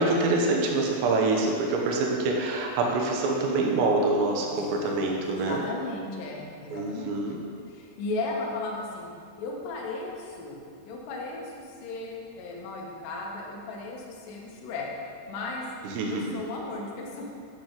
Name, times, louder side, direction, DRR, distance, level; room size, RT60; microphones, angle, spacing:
voice 1, 0.0-5.6 6.7-7.4 15.8-16.4, right 2 dB, 80° right, 0 dB, 3.0 m, -25 dB
voice 2, 4.4-7.2 7.7-9.1 9.4-10.6 10.9-14.9 15.3-15.7 16.1-17.3, left 3 dB, 75° left, -1 dB, 2.1 m, -36 dB
10.0 x 6.8 x 3.0 m, 2.2 s
omnidirectional pair, 5.2 m